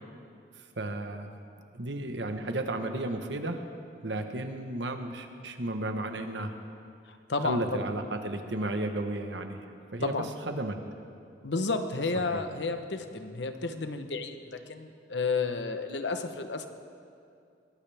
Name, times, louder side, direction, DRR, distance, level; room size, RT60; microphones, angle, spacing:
voice 1, 0.8-1.3 1.7-3.6 4.0-6.5 7.4-9.6 9.9-10.8 12.3-12.4, right 1 dB, 80° right, 6 dB, 1.3 m, -33 dB
voice 2, 7.1-7.8 10.0-10.3 11.4-16.7, left 3 dB, 80° left, 7 dB, 1.0 m, -31 dB
23.0 x 17.5 x 3.5 m, 2.5 s
head